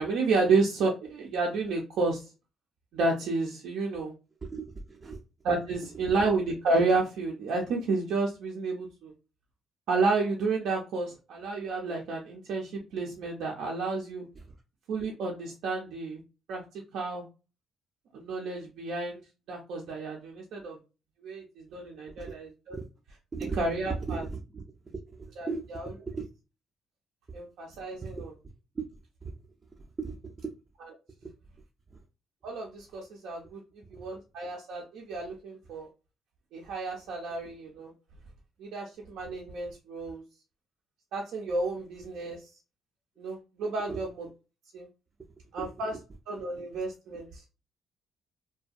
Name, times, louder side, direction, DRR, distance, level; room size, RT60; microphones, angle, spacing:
voice 1, 0.0-2.3 2.9-4.1 5.4-9.1 9.9-14.2 14.9-16.2 16.5-17.2 18.1-19.2 19.5-20.8 21.2-22.8 23.6-24.2 25.4-25.9 27.3-28.3 32.4-33.6 33.9-35.9 36.5-37.9 38.6-40.2 41.1-42.5 43.2-44.3 44.7-44.9 45.5-45.9 46.3-47.4, right 3 dB, 85° right, 0.5 m, -31 dB
voice 2, 4.4-5.2 14.4-14.5 22.2-22.3 22.7-22.9 23.3-26.3 28.0-28.3 28.7-28.8 29.2-29.4 29.7-30.5 31.2-31.3 31.9-32.0 33.9-34.1 43.9-44.0 45.6-45.7 47.1-47.2, right 4 dB, 35° right, 0.4 m, -37 dB
2.6 x 2.2 x 2.4 m
cardioid pair, 90°, 0 cm